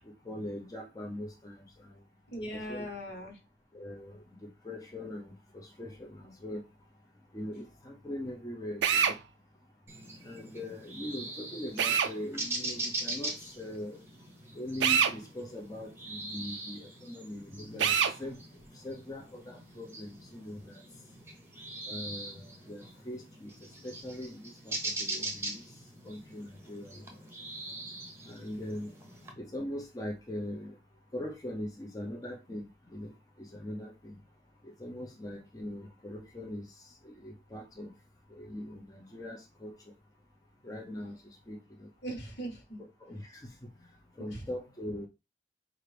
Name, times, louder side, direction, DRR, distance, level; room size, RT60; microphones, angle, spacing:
voice 1, 0.2-1.6 2.5-2.9 3.7-6.7 7.3-9.2 10.2-14.0 14.5-18.4 18.7-20.8 21.9-23.5 23.8-25.6 26.0-27.0 28.3-28.9 29.3-30.8 31.1-32.6 32.9-33.1 33.4-34.2 34.6-36.6 37.0-37.9 38.4-39.8 40.6-41.2 41.5-41.9 42.8-43.4 44.2-45.1, left 1 dB, 20° left, 0 dB, 0.6 m, -41 dB
voice 2, 2.3-3.4 42.0-42.8 44.2-44.4, right 1 dB, 65° left, 1 dB, 1.4 m, -39 dB
Drill, 8.8-9.2 11.8-12.1 14.8-15.2 17.8-18.2, right 7 dB, 90° right, 0.4 m, -25 dB
sound 1, 9.9-29.3, right 2 dB, 15° right, 0.8 m, -42 dB
4.4 x 2.5 x 3.3 m, 0.24 s
head